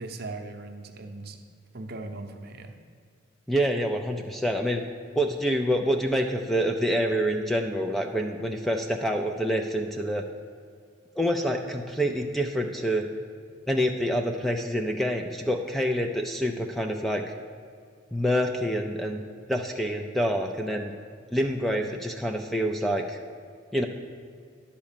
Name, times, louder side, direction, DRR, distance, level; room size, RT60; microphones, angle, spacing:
voice 1, 0.0-1.4 1.7-2.8, right 2 dB, 50° right, 4 dB, 0.8 m, -38 dB
voice 2, 3.5-4.8 5.1-10.2 11.2-13.1 13.7-17.2 18.1-19.2 19.5-20.9 21.3-23.2 23.7-23.9, equal, ahead, 4 dB, 0.4 m, -27 dB
11.0 x 4.3 x 7.4 m, 2.2 s
head